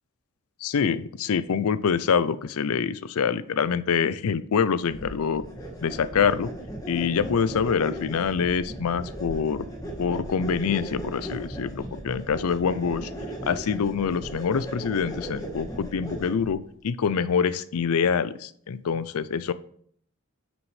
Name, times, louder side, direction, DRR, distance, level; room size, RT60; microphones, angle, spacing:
voice 1, 0.6-5.4 5.8-6.5 6.9-9.7 10.0-13.1 13.4-19.5, left 6 dB, 80° left, 16 dB, 0.4 m, -25 dB
sound 1, 4.9-16.6, right 1 dB, 15° left, 1.4 m, -37 dB
9.2 x 6.2 x 3.3 m, 0.62 s
head